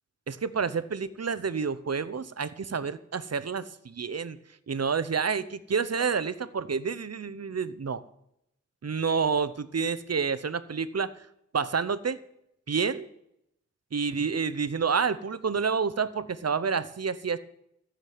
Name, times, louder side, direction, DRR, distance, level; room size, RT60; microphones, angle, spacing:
voice 1, 0.3-4.4 4.7-8.0 8.8-11.1 11.5-12.2 12.7-13.1 13.9-17.4, right 5 dB, 60° right, 15 dB, 0.8 m, -29 dB
14.5 x 7.5 x 9.4 m, 0.78 s
wide cardioid pair, 85°, 29 cm